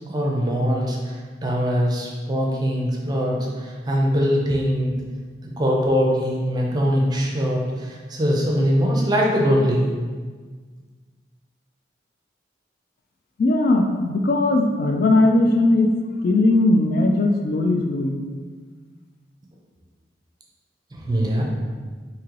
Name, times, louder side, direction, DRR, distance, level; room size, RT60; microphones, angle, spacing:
voice 1, 0.1-4.9 5.6-9.9 20.9-21.4, equal, 20° right, -2 dB, 0.5 m, -22 dB
voice 2, 13.4-15.9 16.2-18.2, left 2 dB, 50° left, 3 dB, 0.3 m, -19 dB
3.1 x 2.8 x 3.7 m, 1.5 s
head